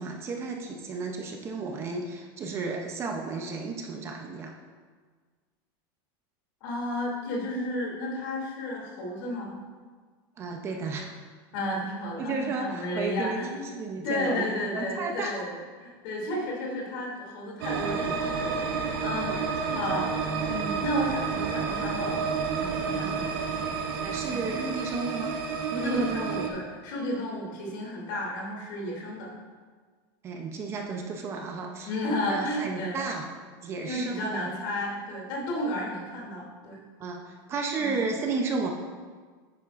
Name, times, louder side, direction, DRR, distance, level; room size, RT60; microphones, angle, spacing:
voice 1, 0.0-4.5 10.4-11.1 12.2-15.4 19.3-19.8 23.3-23.5 24.0-25.4 25.7-26.3 30.2-31.9 32.2-33.3 33.6-34.5 37.0-38.7, right 4 dB, 20° right, 2 dB, 0.6 m, -33 dB
voice 2, 6.6-9.6 11.5-13.7 14.0-19.3 19.6-20.1 20.5-22.2 22.5-23.3 24.3-24.4 25.8-29.3 31.8-33.0 33.8-36.8 37.8-38.0, left 1 dB, 60° left, -2 dB, 2.6 m, -32 dB
sound 1, 17.6-26.5, right 5 dB, 85° right, 1.3 m, -30 dB
10.0 x 8.8 x 2.5 m, 1.5 s
supercardioid pair, 170°, 12 cm